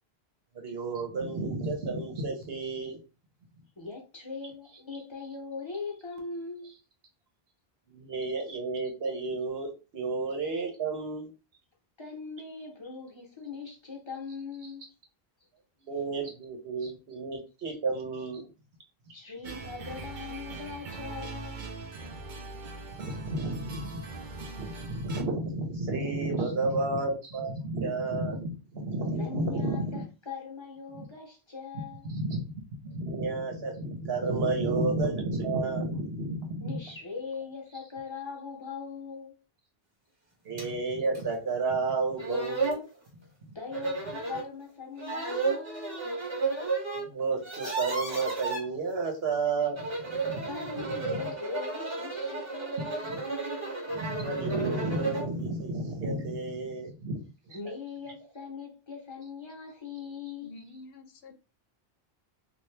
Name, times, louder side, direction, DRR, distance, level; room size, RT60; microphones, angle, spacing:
voice 1, 0.5-3.0 7.9-11.3 15.8-18.4 23.0-30.0 30.9-31.0 32.1-32.4 32.8-36.8 40.4-42.8 43.4-43.5 46.9-49.8 50.1-50.5 50.8-51.2 52.8-53.2 53.9-57.2 57.6-57.7, right 3 dB, 75° right, 1.2 m, -31 dB
voice 2, 3.8-6.8 12.0-14.8 19.1-21.7 26.3-26.7 29.2-32.1 36.6-39.3 43.5-46.1 50.4-53.2 57.5-60.5, left 5 dB, 30° left, 0.8 m, -41 dB
sound 1, 19.4-25.2, right 3 dB, 55° right, 0.8 m, -41 dB
sound 2, 40.6-40.7 41.1-41.2 41.9-42.0 42.2-42.8 43.7-44.5 45.0-47.0 47.3-48.6 49.6-55.3, right 3 dB, 30° right, 1.0 m, -33 dB
voice 3, 60.4-61.3, left 2 dB, 80° left, 0.8 m, -48 dB
2.8 x 2.6 x 3.2 m
omnidirectional pair, 1.0 m